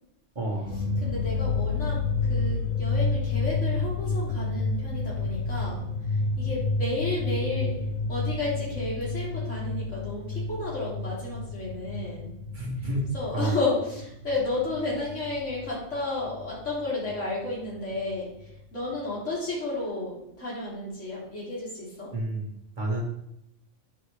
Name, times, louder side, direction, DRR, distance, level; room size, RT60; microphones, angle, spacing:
voice 1, 0.3-0.8 12.5-13.1 13.3-13.5 22.1-22.5 22.8-23.0, right 1 dB, 40° right, -1 dB, 1.6 m, -29 dB
sound 1, 0.7-15.8 16.0-17.1 17.5-17.6 17.9-18.6, left 3 dB, 85° left, 1.4 m, -30 dB
voice 2, 1.0-2.0 2.3-5.8 6.4-7.7 8.1-12.3 12.8-12.9 13.1-18.3 18.7-22.1, left 2 dB, 70° left, -6 dB, 3.7 m, -32 dB
9.7 x 4.7 x 4.9 m, 0.80 s
omnidirectional pair, 1.3 m